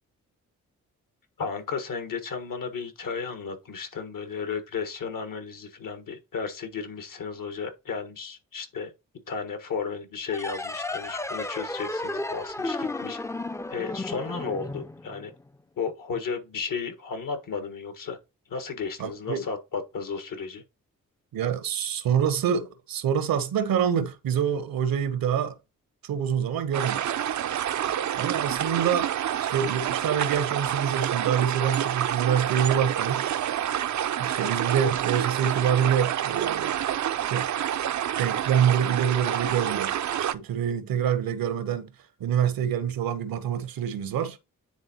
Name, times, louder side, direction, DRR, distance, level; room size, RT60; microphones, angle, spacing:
voice 1, 1.4-8.9 9.3-13.2 13.7-15.3 15.8-18.2 18.5-20.6, left 5 dB, 65° left, 1.6 m, -34 dB
sound 1, 10.3-15.6, left 2 dB, 10° left, 0.5 m, -33 dB
voice 2, 19.0-19.4 21.3-25.6 26.0-27.0 28.2-29.1 29.4-33.3 34.2-36.7 37.3-37.5 38.2-39.9 40.3-41.9 42.2-44.4, right 8 dB, 75° right, 1.0 m, -26 dB
sound 2, 26.7-40.3, right 10 dB, 55° right, 0.5 m, -28 dB
9.7 x 3.6 x 2.9 m
supercardioid pair, 40°, 35 cm